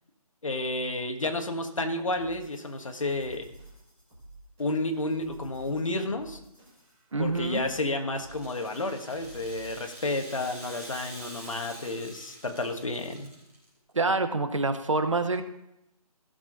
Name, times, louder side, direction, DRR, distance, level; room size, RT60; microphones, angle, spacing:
voice 1, 0.4-3.5 4.6-6.4 7.2-13.3, left 2 dB, 55° left, 5 dB, 1.6 m, -31 dB
sound 1, 2.1-10.0, right 2 dB, 5° right, 0.8 m, -51 dB
voice 2, 7.1-7.6 13.9-15.4, right 3 dB, 55° right, 9 dB, 1.0 m, -26 dB
Rattle (instrument), 8.3-13.7, right 1 dB, 20° right, 3.6 m, -46 dB
16.0 x 6.9 x 3.9 m, 0.84 s
hypercardioid pair, 180°, 20 cm